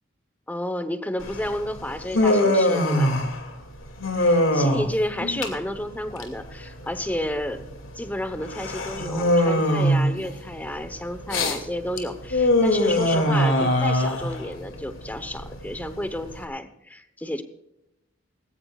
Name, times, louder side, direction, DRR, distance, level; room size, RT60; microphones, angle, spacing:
voice 1, 0.5-3.1 4.2-7.6 7.9-17.4, left 1 dB, 10° left, 10 dB, 1.0 m, -31 dB
Human voice, 1.2-16.4, left 1 dB, 75° left, 2.5 m, -23 dB
19.0 x 17.5 x 2.4 m, 0.86 s
head